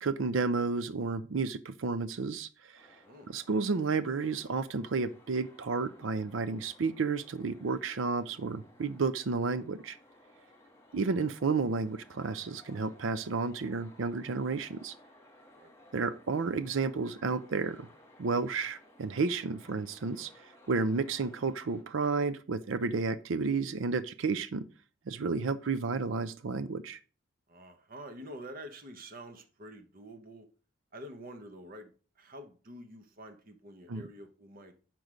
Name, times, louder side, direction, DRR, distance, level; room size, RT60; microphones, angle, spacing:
voice 1, 0.0-2.8 3.3-10.0 10.9-14.9 15.9-17.9 18.2-24.6 25.1-27.0 33.9-34.0, right 4 dB, 80° right, 14 dB, 0.5 m, -32 dB
sound 1, 2.7-21.8, left 1 dB, 15° left, 1.8 m, -59 dB
voice 2, 27.5-30.5 30.9-34.7, equal, 45° right, 7 dB, 1.0 m, -48 dB
7.9 x 6.1 x 5.0 m, 0.37 s
head